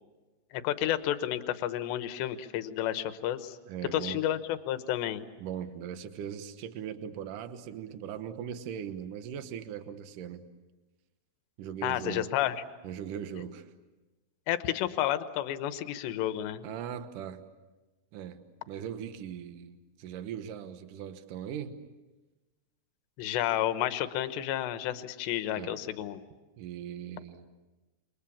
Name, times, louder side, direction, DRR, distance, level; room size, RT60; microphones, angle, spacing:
voice 1, 0.5-3.6 3.9-5.2 11.8-12.6 14.5-16.6 23.2-26.2, left 12 dB, 75° left, 10 dB, 3.1 m, -31 dB
voice 2, 3.7-4.3 5.4-10.4 11.6-12.3 12.8-13.7 16.6-17.4 18.1-18.4 18.7-21.8 25.5-25.9 26.6-27.5, right 9 dB, 75° right, 9 dB, 2.0 m, -39 dB
28.5 x 25.0 x 7.2 m, 1.2 s
omnidirectional pair, 5.5 m